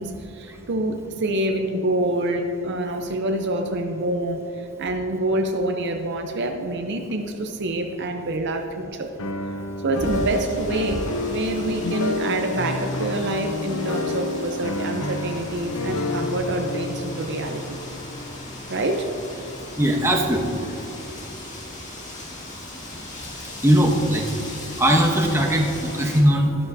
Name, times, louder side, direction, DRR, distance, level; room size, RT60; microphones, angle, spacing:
voice 1, 0.0-9.1 9.8-17.8 18.7-19.1, right 1 dB, 50° right, 5 dB, 0.6 m, -26 dB
sound 1, 9.2-19.1, left 2 dB, 65° left, 0.6 m, -29 dB
Wind, 10.0-26.2, left 2 dB, 35° left, 2.1 m, -39 dB
voice 2, 19.8-20.6 23.6-24.3 24.8-26.6, equal, 10° right, 1 dB, 0.9 m, -19 dB
12.5 x 12.0 x 2.7 m, 2.8 s
head